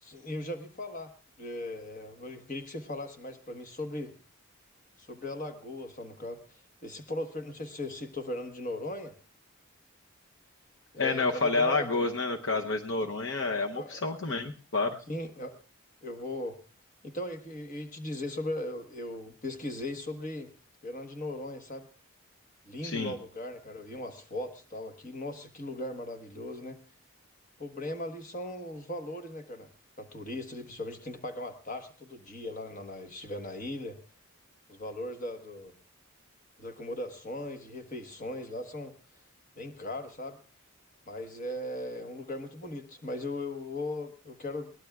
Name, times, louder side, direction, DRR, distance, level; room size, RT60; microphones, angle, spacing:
voice 1, 0.0-1.1 1.4-4.1 5.0-9.1 10.9-11.9 13.7-14.0 15.1-15.6 16.0-16.6 17.0-20.5 20.8-21.9 22.7-26.8 27.6-29.7 30.0-34.0 34.7-35.7 36.6-38.9 39.6-40.4 41.1-44.7, left 1 dB, 40° left, 7 dB, 1.3 m, -38 dB
voice 2, 11.0-15.0 22.8-23.1, left 3 dB, 65° left, 3 dB, 0.8 m, -29 dB
21.5 x 18.0 x 2.4 m, 0.38 s
head